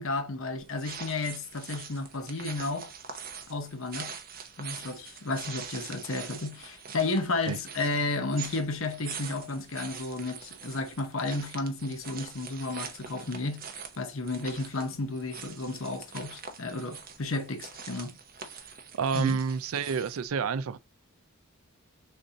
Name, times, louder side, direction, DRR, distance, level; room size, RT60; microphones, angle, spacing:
voice 1, 0.0-2.9 3.5-4.1 4.6-13.7 14.0-18.2 19.1-19.4, left 3 dB, 60° left, 0.8 m, -32 dB
sound 1, 0.6-20.3, right 6 dB, 40° right, 0.8 m, -44 dB
voice 2, 19.0-20.8, right 5 dB, 70° right, 0.4 m, -29 dB
6.5 x 2.6 x 2.8 m
head